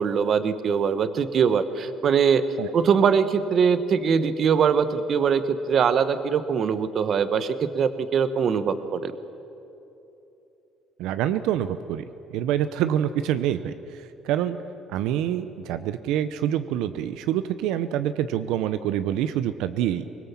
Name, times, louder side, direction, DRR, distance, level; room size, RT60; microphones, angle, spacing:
voice 1, 0.0-2.4 2.7-9.1, right 6 dB, 45° right, 12 dB, 1.2 m, -22 dB
voice 2, 11.0-12.0 12.3-14.6 14.9-20.0, right 11 dB, 85° right, 11 dB, 0.8 m, -26 dB
24.0 x 20.5 x 7.4 m, 3.0 s
cardioid pair, 140°, 0 cm